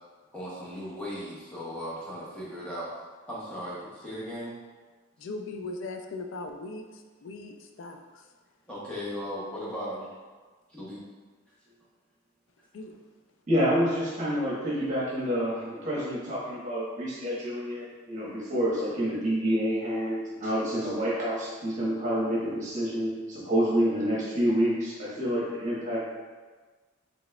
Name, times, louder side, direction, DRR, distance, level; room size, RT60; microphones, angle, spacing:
voice 1, 0.3-2.9 3.3-4.6 8.7-10.1 10.7-11.0 11.7-11.8, equal, 5° left, -8 dB, 0.7 m, -37 dB
voice 2, 5.2-8.2 12.7-12.9, left 3 dB, 70° left, 5 dB, 0.4 m, -39 dB
voice 3, 13.5-26.0, equal, 40° right, -7 dB, 1.1 m, -28 dB
4.1 x 3.2 x 2.2 m, 1.4 s
head